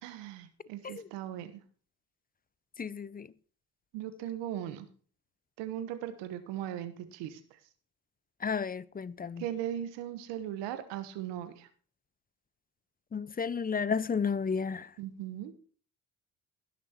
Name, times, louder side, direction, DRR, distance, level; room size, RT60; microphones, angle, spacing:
voice 1, 0.0-1.5 3.9-4.9 5.6-7.4 9.4-11.7 15.0-15.5, right 11 dB, 85° right, 1.3 m, -38 dB
voice 2, 2.8-3.3 8.4-9.4 13.1-14.9, left 6 dB, 20° left, 0.6 m, -32 dB
17.0 x 6.3 x 4.4 m
supercardioid pair, 55°, 41 cm